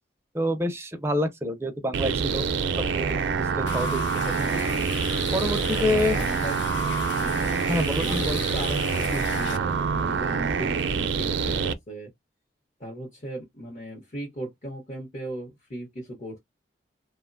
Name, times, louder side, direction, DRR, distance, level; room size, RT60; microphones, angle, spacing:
voice 1, 0.3-2.5 2.8-4.6 5.3-6.2 7.7-8.4, left 1 dB, 15° right, 0.5 m, -28 dB
sound 1, 1.9-11.7, right 5 dB, 90° right, 0.4 m, -26 dB
Stream, 3.7-9.6, left 7 dB, 85° left, 0.4 m, -37 dB
voice 2, 5.9-6.6 7.2-7.6 8.0-12.1 12.8-16.4, right 1 dB, 40° left, 0.8 m, -37 dB
2.9 x 2.1 x 2.4 m
head